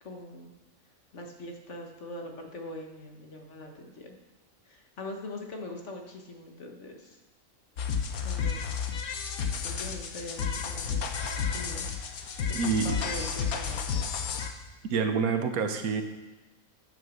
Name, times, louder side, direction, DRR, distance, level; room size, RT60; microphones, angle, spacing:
voice 1, 0.0-0.5 1.1-4.2 4.6-7.2 8.2-8.7 9.6-12.0 12.5-12.6 12.8-14.1, left 1 dB, 55° left, 2 dB, 1.7 m, -42 dB
sound 1, 7.8-14.5, left 6 dB, 85° left, 1.4 m, -31 dB
voice 2, 12.5-13.0 14.9-16.0, right 5 dB, 85° right, 7 dB, 1.4 m, -27 dB
9.3 x 8.0 x 6.3 m, 1.1 s
omnidirectional pair, 1.5 m